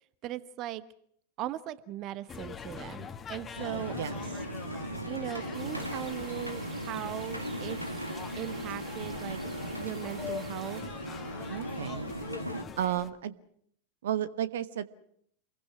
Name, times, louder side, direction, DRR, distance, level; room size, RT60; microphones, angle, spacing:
voice 1, 0.2-0.8 1.4-4.0 5.1-7.8 8.4-9.4 9.8-10.8, right 13 dB, 35° right, 16 dB, 1.2 m, -39 dB
sound 1, 2.3-13.1, left 6 dB, 20° left, 1.9 m, -44 dB
sound 2, 3.6-12.6, equal, 90° right, 2.2 m, -37 dB
sound 3, 5.5-10.8, right 2 dB, 10° right, 3.9 m, -50 dB
voice 2, 11.5-12.1 12.8-13.3 14.0-14.8, right 11 dB, 60° right, 15 dB, 1.2 m, -32 dB
28.5 x 22.5 x 6.0 m, 0.65 s
figure-of-eight pair, 90°, 0 cm